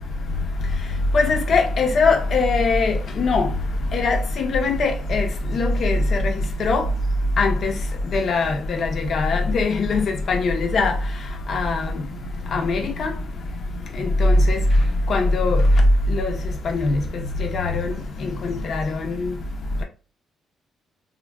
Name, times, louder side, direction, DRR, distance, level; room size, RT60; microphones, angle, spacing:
voice 1, 1.1-3.4 3.9-5.3 5.5-6.0 6.2-6.3 6.6-6.8 7.4-7.7 8.1-8.5 9.1-10.9 11.5-11.8 12.5-13.1 14.2-14.6 15.1-15.6 16.2-16.3 17.5-17.7 18.7-18.8, left 3 dB, 55° left, 0.5 m, -20 dB
3.5 x 2.1 x 2.2 m
cardioid pair, 90°, 0 cm